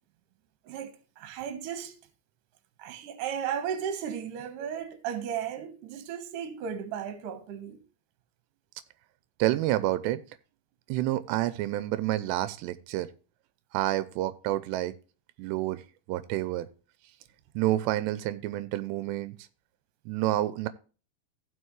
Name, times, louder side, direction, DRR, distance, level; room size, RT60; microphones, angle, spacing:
voice 1, 0.6-1.9 2.8-7.8, right 8 dB, 60° right, 2.6 m, -35 dB
voice 2, 9.4-10.2 10.9-13.1 13.7-15.0 15.4-15.8 16.1-16.7 17.6-19.3 20.1-20.7, right 15 dB, 85° right, 2.8 m, -28 dB
15.5 x 6.0 x 3.2 m
omnidirectional pair, 4.8 m